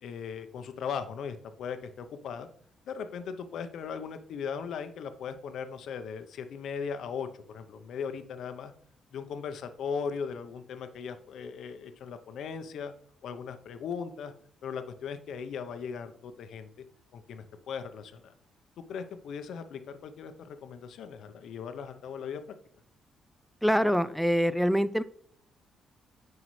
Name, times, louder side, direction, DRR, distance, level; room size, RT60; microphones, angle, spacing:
voice 1, 0.0-2.5 2.9-8.7 9.1-12.9 13.2-14.3 14.6-16.7 17.1-18.3 18.9-22.6, left 6 dB, 70° left, 9 dB, 0.7 m, -38 dB
voice 2, 23.6-25.0, equal, ahead, 15 dB, 0.4 m, -25 dB
9.6 x 4.8 x 3.2 m, 0.63 s
cardioid pair, 90°, 0 cm